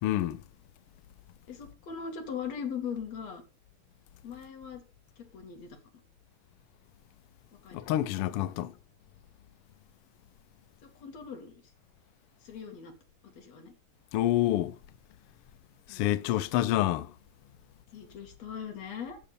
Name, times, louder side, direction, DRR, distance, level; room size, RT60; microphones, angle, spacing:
voice 1, 0.0-0.4 7.7-8.7 14.1-14.8 15.9-17.1, left 13 dB, 85° left, 1.3 m, -27 dB
voice 2, 1.5-3.4 4.2-4.8 5.2-5.8 7.6-7.8 10.8-11.5 12.4-12.9 13.2-13.7 15.9-16.1 17.9-19.2, left 7 dB, 65° left, 3.2 m, -40 dB
14.0 x 6.6 x 4.1 m
omnidirectional pair, 3.4 m